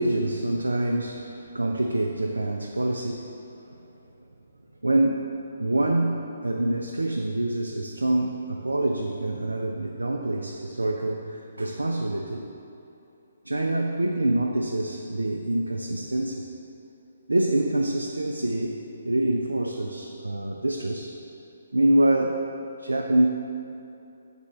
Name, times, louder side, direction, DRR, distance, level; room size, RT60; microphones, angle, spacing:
voice 1, 0.0-3.3 3.7-3.8 4.8-5.3 5.6-12.5 13.5-16.5 17.3-21.1 21.7-22.4 22.8-23.3, right 1 dB, 90° right, 1 dB, 0.4 m, -26 dB
7.4 x 3.4 x 4.1 m, 2.7 s
figure-of-eight pair, 140°, 0 cm